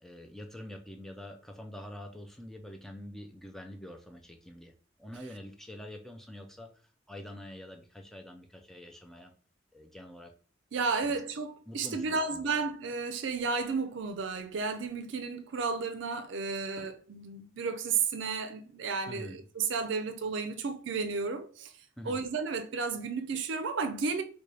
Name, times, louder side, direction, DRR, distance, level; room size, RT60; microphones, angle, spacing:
voice 1, 0.0-4.7 5.0-9.3 9.7-10.3 11.0-11.2 11.7-12.5 19.1-19.4 22.0-22.2, left 1 dB, ahead, 0.3 m, -46 dB
voice 2, 10.7-21.7 22.1-24.2, right 4 dB, 65° right, 0.4 m, -33 dB
3.9 x 2.2 x 3.1 m
head